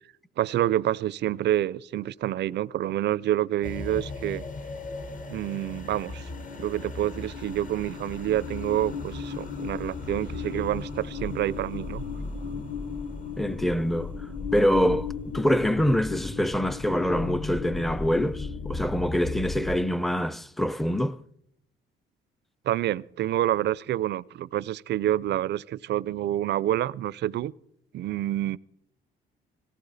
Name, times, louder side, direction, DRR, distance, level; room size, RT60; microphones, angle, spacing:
voice 1, 0.4-4.4 5.3-6.3 6.6-12.0 22.7-27.5 27.9-28.6, right 12 dB, 60° right, 0.4 m, -28 dB
sound 1, 3.6-19.8, left 4 dB, 40° left, 1.2 m, -35 dB
voice 2, 13.4-14.1 14.5-21.2, equal, ahead, 0.5 m, -25 dB
18.0 x 14.5 x 4.0 m
cardioid pair, 90°, 20 cm